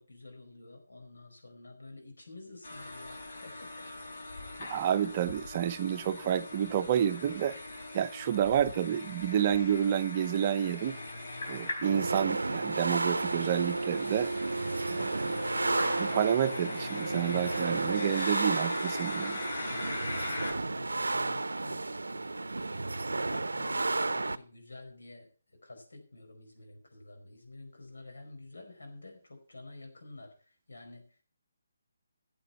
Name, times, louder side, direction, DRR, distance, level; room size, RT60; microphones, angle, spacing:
voice 1, 0.0-3.9 19.7-22.8 23.2-31.2, left 2 dB, 85° left, 4.8 m, -50 dB
sound 1, 2.6-20.5, left 2 dB, 60° left, 4.1 m, -41 dB
voice 2, 4.7-7.6 7.9-11.0 11.5-14.3 14.9-15.4 16.0-19.4, right 9 dB, 35° right, 0.7 m, -29 dB
sound 2, 11.8-24.4, right 3 dB, 90° right, 0.6 m, -32 dB
13.0 x 7.8 x 5.6 m
figure-of-eight pair, 155°, 0 cm